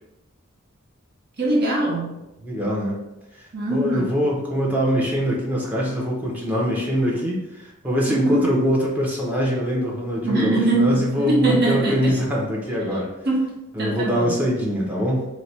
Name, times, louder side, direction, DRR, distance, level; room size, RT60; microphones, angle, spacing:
voice 1, 1.4-2.2 3.5-4.1 8.1-8.4 10.2-12.1 13.2-14.4, right 2 dB, 50° right, -4 dB, 1.0 m, -22 dB
voice 2, 2.4-3.0 3.7-13.1 13.7-15.3, equal, 10° right, -4 dB, 0.7 m, -23 dB
3.2 x 2.1 x 4.1 m, 0.95 s
head